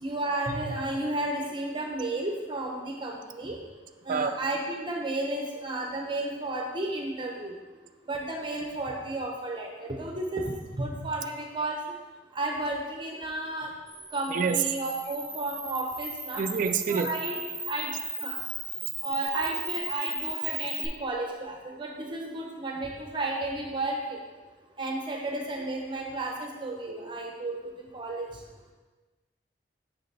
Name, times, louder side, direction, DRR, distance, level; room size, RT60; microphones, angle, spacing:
voice 1, 0.0-3.6 4.1-7.6 8.1-10.4 10.7-11.8 12.3-13.7 14.1-16.4 16.9-17.4 17.7-17.9 18.2-18.4 19.0-24.0 24.8-28.3, right 2 dB, 30° right, 1 dB, 0.7 m, -32 dB
Camera, 13.9-20.9, right 2 dB, ahead, 1.6 m, -36 dB
voice 2, 14.3-14.6 16.4-17.1, right 6 dB, 50° right, 8 dB, 0.3 m, -26 dB
6.7 x 5.8 x 3.3 m, 1.3 s
head